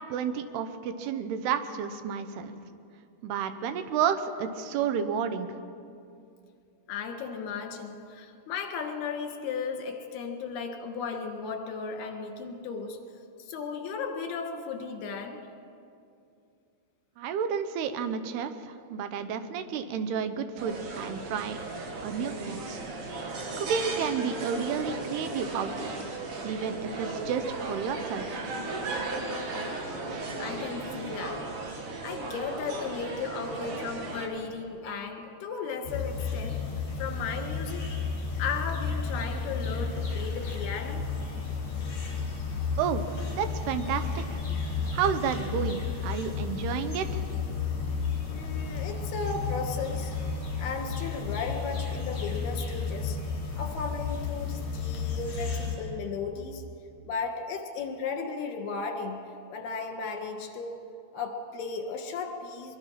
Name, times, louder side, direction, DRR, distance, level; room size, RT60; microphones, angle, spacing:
voice 1, 0.1-2.5 3.2-5.5 17.2-21.6 22.0-22.8 23.6-25.9 26.4-28.5 42.8-43.1 43.4-44.4 44.9-47.2, right 7 dB, 80° right, 9 dB, 3.0 m, -31 dB
voice 2, 6.9-13.0 13.4-15.4 30.4-31.4 32.0-36.6 37.0-37.9 38.4-41.0 48.3-50.1 50.6-53.2 53.5-56.6 57.0-59.2 59.5-60.8 61.1-62.8, left 5 dB, 75° left, 4 dB, 3.8 m, -35 dB
sound 1, 20.6-34.3, right 2 dB, 55° right, 3.5 m, -36 dB
sound 2, 35.8-55.8, left 5 dB, 50° left, 5.0 m, -32 dB
23.0 x 22.5 x 5.9 m, 2.5 s
omnidirectional pair, 4.6 m